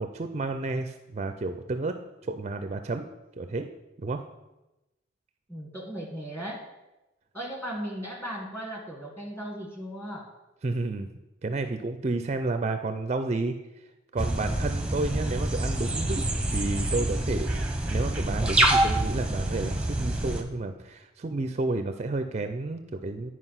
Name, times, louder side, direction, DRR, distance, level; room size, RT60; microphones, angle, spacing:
voice 1, 0.0-2.0 2.2-3.1 3.4-3.7 4.0-4.2 10.6-11.1 11.4-13.5 14.1-17.6 17.9-23.3, right 3 dB, 35° right, 8 dB, 0.4 m, -31 dB
voice 2, 5.5-6.7 7.3-10.3, equal, 10° left, 1 dB, 1.6 m, -37 dB
sound 1, 14.2-20.4, right 1 dB, 5° right, 0.8 m, -26 dB
9.9 x 4.8 x 5.7 m, 1.0 s
head